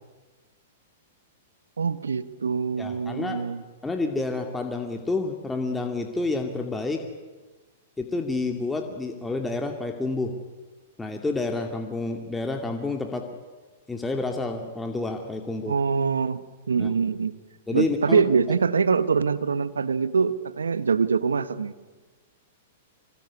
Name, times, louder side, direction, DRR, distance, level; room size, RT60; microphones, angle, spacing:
voice 1, 1.8-3.6 15.6-17.4 17.7-21.7, right 5 dB, 90° right, 15 dB, 1.3 m, -24 dB
voice 2, 2.8-3.4 3.8-7.0 8.0-10.3 11.0-13.3 13.9-15.7 16.8-16.9 17.7-18.2, left 3 dB, 10° left, 4 dB, 2.5 m, -29 dB
25.5 x 22.5 x 9.7 m, 1.3 s
hypercardioid pair, 115°, 0 cm